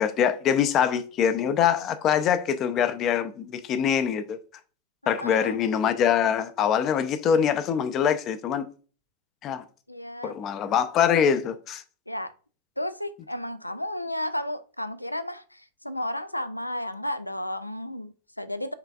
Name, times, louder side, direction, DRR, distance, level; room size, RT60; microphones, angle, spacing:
voice 1, 0.0-4.4 5.1-8.6 9.4-9.6 10.2-11.8, left 8 dB, 35° left, 0.5 m, -24 dB
voice 2, 5.0-5.6 9.9-10.4 12.1-12.3 12.8-18.7, left 1 dB, 85° left, 0.3 m, -33 dB
6.7 x 3.3 x 2.3 m
figure-of-eight pair, 90°, 0 cm